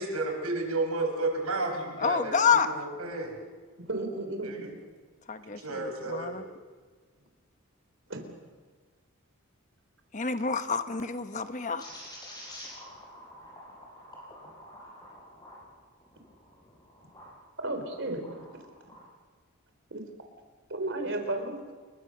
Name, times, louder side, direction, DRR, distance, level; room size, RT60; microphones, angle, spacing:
voice 1, 0.0-3.3 4.4-4.7 5.6-6.4, right 2 dB, 85° right, 3 dB, 5.6 m, -32 dB
voice 2, 2.0-2.8 5.3-6.4 10.1-11.9, left 6 dB, 35° left, 9 dB, 1.1 m, -28 dB
voice 3, 3.9-4.6 8.1-8.3 17.6-18.4 19.9-20.0 20.7-21.6, right 2 dB, 55° right, 6 dB, 3.9 m, -33 dB
sound 1, 11.8-17.3 17.8-19.1, left 1 dB, 20° left, 7.5 m, -48 dB
29.5 x 22.5 x 6.6 m, 1.5 s
head